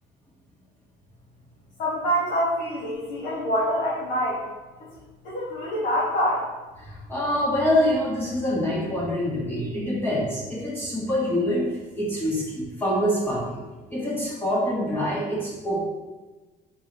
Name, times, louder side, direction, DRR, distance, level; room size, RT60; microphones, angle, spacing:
voice 1, 1.8-4.4 5.2-6.4, equal, 80° left, -9 dB, 1.4 m, -25 dB
voice 2, 6.8-11.7 11.9-13.6 13.9-15.8, left 1 dB, 15° left, -7 dB, 1.2 m, -25 dB
3.9 x 3.8 x 3.1 m, 1.2 s
cardioid pair, 110°, 17 cm